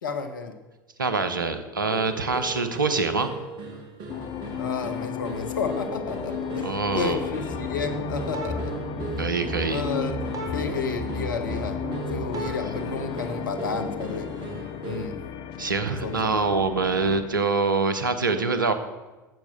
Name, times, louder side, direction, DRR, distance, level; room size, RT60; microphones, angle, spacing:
voice 1, 0.0-0.5 4.6-8.8 9.7-11.8 12.1-14.3 14.8-15.2 16.0-16.3, left 5 dB, 75° left, 7 dB, 1.1 m, -31 dB
voice 2, 1.0-3.3 6.6-7.2 9.2-9.8 15.6-18.7, right 4 dB, 85° right, 10 dB, 0.9 m, -25 dB
sound 1, 1.9-15.2, right 4 dB, 50° right, 2.0 m, -38 dB
sound 2, 4.1-17.4, left 10 dB, 50° left, 0.7 m, -35 dB
sound 3, 7.5-12.5, right 1 dB, 30° right, 2.2 m, -34 dB
10.5 x 7.3 x 6.7 m, 1.2 s
figure-of-eight pair, 75°, 11 cm